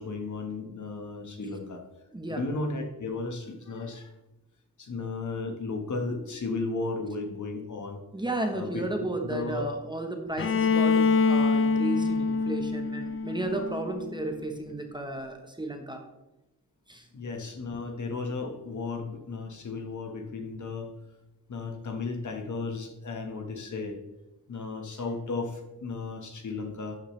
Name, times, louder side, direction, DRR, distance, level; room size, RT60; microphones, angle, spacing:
voice 1, 0.0-1.8 2.3-4.1 4.8-8.0 8.5-9.7 17.1-20.9 21.5-24.0 24.5-27.0, left 3 dB, 50° left, 4 dB, 1.5 m, -34 dB
voice 2, 2.1-2.4 8.1-16.0 16.9-17.0, right 1 dB, 10° right, 4 dB, 1.1 m, -33 dB
Bowed string instrument, 10.4-14.2, left 4 dB, 35° left, 0.5 m, -25 dB
12.5 x 8.8 x 3.3 m, 0.95 s
wide cardioid pair, 175°, 37 cm